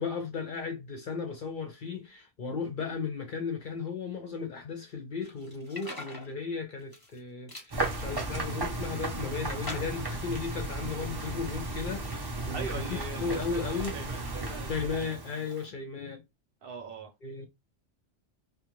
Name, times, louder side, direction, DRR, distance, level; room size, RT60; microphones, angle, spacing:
voice 1, 0.0-14.0 14.7-16.2 17.2-17.5, left 5 dB, 55° left, 0.6 m, -35 dB
sound 1, 5.2-6.3 6.8-7.2 7.5-7.7 8.3-9.1 9.6-10.1, left 2 dB, 20° left, 0.7 m, -43 dB
sound 2, 7.7-15.7, right 2 dB, 30° right, 0.4 m, -35 dB
voice 2, 12.5-15.1 16.6-17.1, right 4 dB, 60° right, 0.8 m, -41 dB
2.3 x 2.2 x 2.9 m
omnidirectional pair, 1.2 m